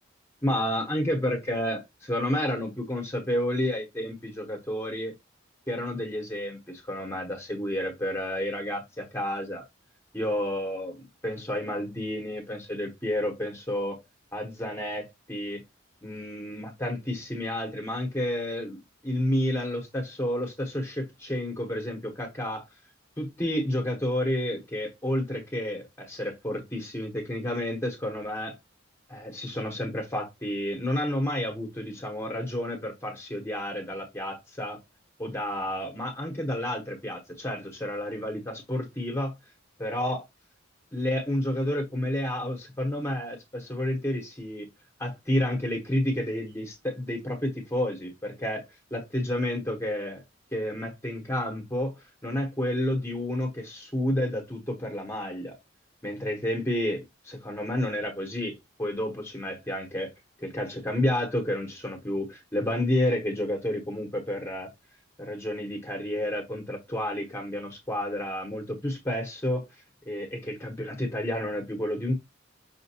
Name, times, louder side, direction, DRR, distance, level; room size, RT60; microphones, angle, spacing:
voice 1, 0.4-5.1 5.7-9.6 10.1-14.0 14.3-15.6 16.0-22.7 23.2-28.5 29.1-34.8 35.2-39.3 39.8-40.2 40.9-44.7 45.0-48.6 48.9-50.2 50.5-55.5 56.0-60.1 60.4-64.7 65.2-69.7 70.1-72.1, left 1 dB, 10° left, 1.0 m, -30 dB
5.7 x 2.5 x 2.8 m
head